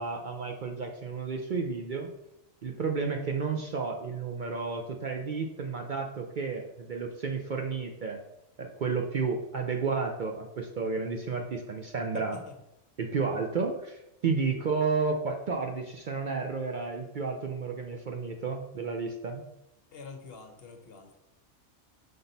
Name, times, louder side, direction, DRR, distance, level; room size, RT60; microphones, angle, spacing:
voice 1, 0.0-2.1 2.6-8.2 8.6-12.4 13.0-19.4, right 4 dB, 50° right, 3 dB, 0.6 m, -32 dB
voice 2, 12.1-12.5 19.9-21.2, left 4 dB, 55° left, 5 dB, 1.1 m, -46 dB
5.9 x 5.3 x 4.0 m, 0.87 s
omnidirectional pair, 1.2 m